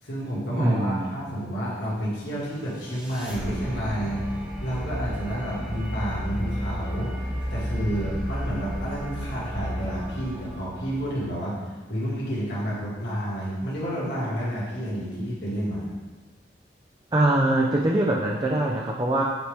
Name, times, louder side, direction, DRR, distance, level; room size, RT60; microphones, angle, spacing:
voice 1, 0.0-15.9, equal, 65° left, -8 dB, 2.0 m, -30 dB
voice 2, 0.6-1.3 17.1-19.2, right 1 dB, 20° right, -2 dB, 0.5 m, -23 dB
sound 1, 2.3-11.4, equal, 5° right, 1.1 m, -33 dB
7.2 x 4.5 x 3.5 m, 1.3 s
head